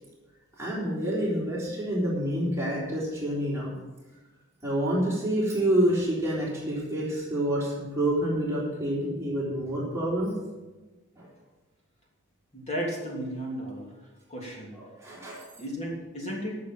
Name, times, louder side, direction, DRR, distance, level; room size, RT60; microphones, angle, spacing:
voice 1, 0.6-3.7 4.6-10.3 11.2-11.3 14.8-15.4, right 1 dB, 15° right, -7 dB, 3.9 m, -28 dB
voice 2, 12.5-13.9 14.3-14.7 15.6-16.6, equal, 30° left, -2 dB, 3.1 m, -34 dB
12.5 x 7.1 x 7.6 m, 1.2 s
head